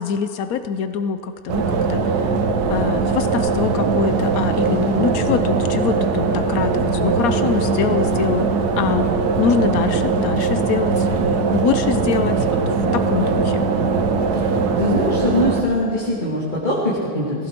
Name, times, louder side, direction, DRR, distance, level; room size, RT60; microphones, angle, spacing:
voice 1, 0.0-2.1 2.7-8.5 8.8-9.1 9.4-12.6 12.9-13.7, left 7 dB, 65° left, 10 dB, 0.9 m, -24 dB
sound 1, 1.5-15.6, right 4 dB, 60° right, 1.3 m, -20 dB
voice 2, 14.8-17.5, left 1 dB, 25° left, -7 dB, 2.0 m, -22 dB
18.5 x 15.5 x 4.4 m, 2.8 s
omnidirectional pair, 2.1 m